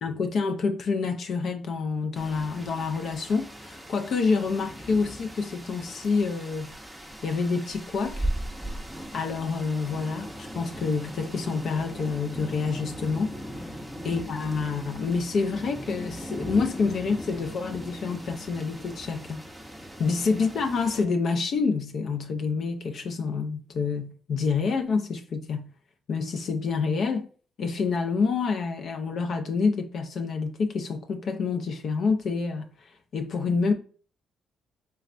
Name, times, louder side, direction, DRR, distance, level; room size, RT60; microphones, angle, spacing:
voice 1, 0.0-6.7 7.2-8.3 9.1-13.3 13.6-13.7 14.0-19.5 20.0-25.7 26.1-27.3 27.6-33.7, left 4 dB, 60° left, 0.4 m, -27 dB
sound 1, 2.1-21.0, equal, ahead, 0.6 m, -38 dB
3.3 x 3.1 x 2.4 m
cardioid pair, 90°, 0 cm